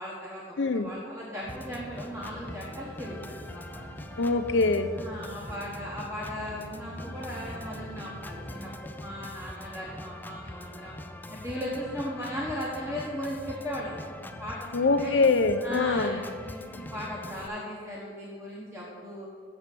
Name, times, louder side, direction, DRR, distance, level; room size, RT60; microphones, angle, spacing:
voice 1, 0.0-3.9 4.9-10.9 11.3-14.1 14.4-15.2 15.6-19.3, equal, 15° right, -6 dB, 1.3 m, -37 dB
voice 2, 0.6-0.9 4.2-4.9 14.7-16.2, left 3 dB, 85° left, 9 dB, 0.6 m, -24 dB
sound 1, 1.4-8.6, right 1 dB, 85° right, 1.6 m, -46 dB
Organ, 1.5-17.5, left 1 dB, 10° left, 0.3 m, -43 dB
7.1 x 6.1 x 6.8 m, 2.1 s
head